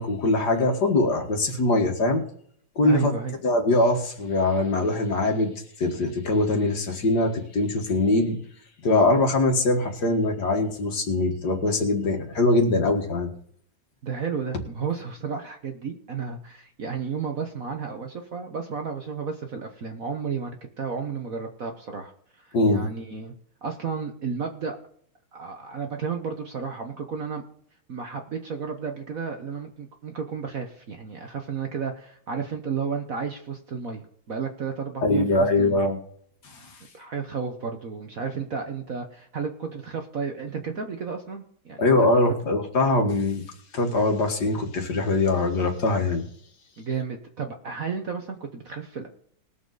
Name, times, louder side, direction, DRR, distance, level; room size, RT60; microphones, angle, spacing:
voice 1, 0.0-2.2 2.8-3.1 3.4-5.5 5.8-8.4 8.8-13.3 22.5-22.8 35.0-36.0 36.4-36.7 41.8-43.4 43.7-46.3, left 2 dB, 50° left, 3 dB, 2.1 m, -22 dB
voice 2, 2.8-3.3 14.0-22.1 22.4-23.3 23.6-24.8 25.3-27.4 27.9-35.8 36.9-42.1 46.8-49.1, right 5 dB, 50° right, 4 dB, 1.3 m, -32 dB
20.5 x 7.1 x 4.0 m, 0.64 s
omnidirectional pair, 2.3 m